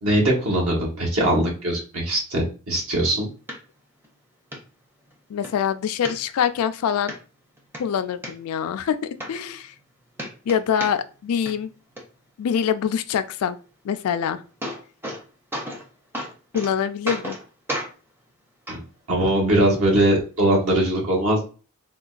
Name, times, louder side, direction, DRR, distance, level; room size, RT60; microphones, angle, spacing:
voice 1, 0.0-3.3 18.7-18.8 19.1-21.5, right 1 dB, 70° right, -3 dB, 1.2 m, -21 dB
sound 1, 3.5-3.6 4.0-4.1 4.5-4.6 5.1-5.5 6.0-6.6 7.1-7.2 7.6-8.3 8.9-9.0 9.2-9.9 10.1-11.2 11.5-12.0 14.0-14.1 14.4-15.2 15.5-15.9 16.1-16.7 17.1-17.4 17.7-17.9 18.7-18.8 19.7-19.8, equal, 10° right, 0.5 m, -32 dB
voice 2, 5.3-7.1 7.8-9.0 9.3-9.7 10.5-11.7 12.4-13.6 13.8-14.4 16.5-17.4, left 8 dB, 80° left, 11 dB, 0.3 m, -24 dB
3.7 x 2.2 x 2.4 m, 0.36 s
head